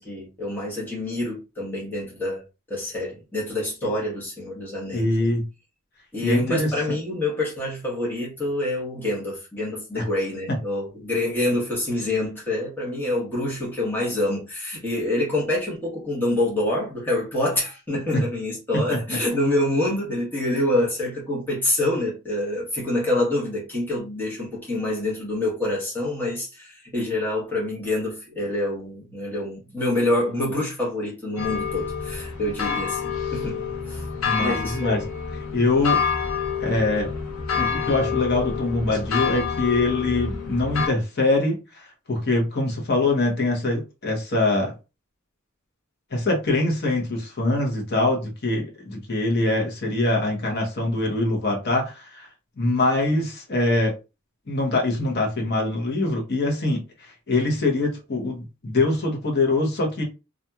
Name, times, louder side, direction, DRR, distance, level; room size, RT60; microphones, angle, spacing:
voice 1, 0.0-2.4 2.7-5.3 6.1-34.0 34.4-35.0, left 1 dB, 10° left, 1.0 m, -26 dB
voice 2, 4.9-5.5 6.2-7.0 9.9-10.1 34.3-35.0 35.5-36.0 36.6-37.1 37.6-44.7 46.1-52.3 52.6-53.9 54.5-60.0, left 2 dB, 50° left, 0.9 m, -23 dB
sound 1, 31.4-40.9, left 6 dB, 90° left, 0.6 m, -28 dB
2.8 x 2.5 x 2.3 m
head